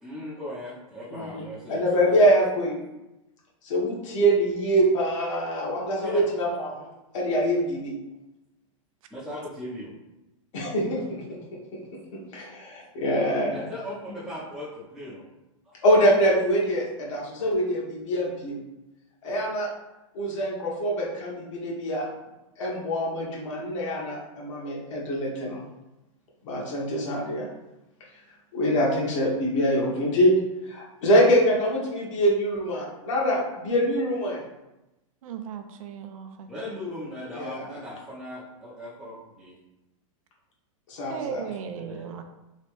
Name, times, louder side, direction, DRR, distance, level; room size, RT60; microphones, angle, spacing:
voice 1, 0.0-1.9 6.0-6.3 9.1-9.9 13.5-15.2 15.6-15.8 36.5-39.5 41.7-42.1, left 1 dB, ahead, -10 dB, 0.6 m, -38 dB
voice 2, 1.1-1.4 1.7-2.8 3.6-6.9 7.1-7.9 10.5-11.0 12.3-13.6 15.8-18.6 19.2-19.7 20.1-22.1 22.6-25.6 26.4-27.5 28.5-30.3 30.7-34.4 37.3-37.6 40.9-41.4, equal, 60° left, -3 dB, 1.2 m, -24 dB
voice 3, 35.2-36.8 41.1-42.2, right 7 dB, 75° right, 7 dB, 0.4 m, -36 dB
3.2 x 2.9 x 3.0 m, 0.97 s
supercardioid pair, 155°, 18 cm